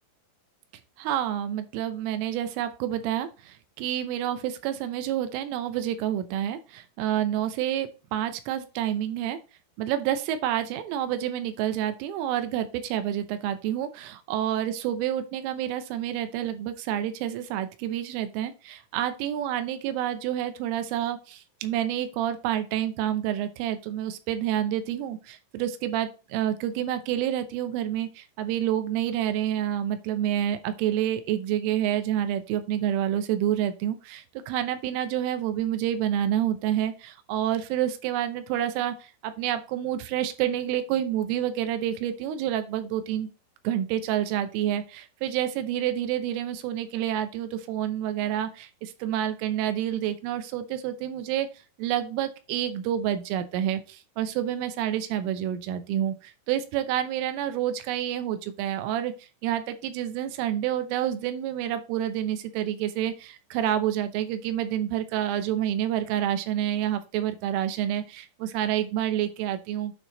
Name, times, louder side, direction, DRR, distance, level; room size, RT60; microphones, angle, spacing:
voice 1, 1.0-9.4 9.8-43.3 43.6-51.5 51.8-69.9, right 11 dB, 80° right, 10 dB, 3.3 m, -28 dB
8.9 x 4.5 x 3.9 m, 0.32 s
omnidirectional pair, 5.8 m